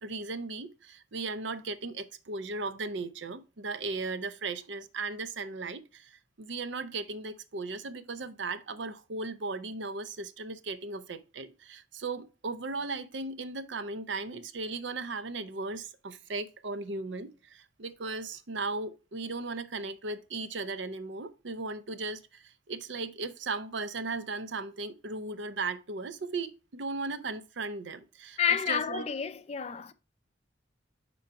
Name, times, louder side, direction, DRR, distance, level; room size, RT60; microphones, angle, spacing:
voice 1, 0.0-29.1, right 3 dB, 75° right, 0.6 m, -37 dB
voice 2, 28.4-29.9, left 8 dB, 35° left, 0.4 m, -29 dB
5.8 x 3.9 x 5.6 m
head